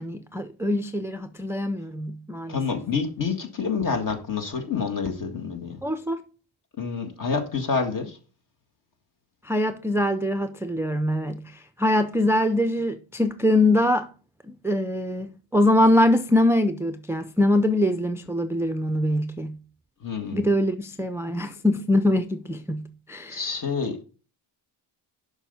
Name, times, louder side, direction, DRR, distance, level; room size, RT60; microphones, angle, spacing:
voice 1, 0.0-2.6 5.8-6.2 9.4-14.1 14.5-19.6 20.3-23.4, left 1 dB, 5° right, 0.4 m, -23 dB
voice 2, 2.5-5.8 6.8-8.2 20.0-20.5 23.3-24.0, left 5 dB, 45° left, 1.9 m, -28 dB
7.2 x 5.7 x 5.5 m
cardioid pair, 105°, 46 cm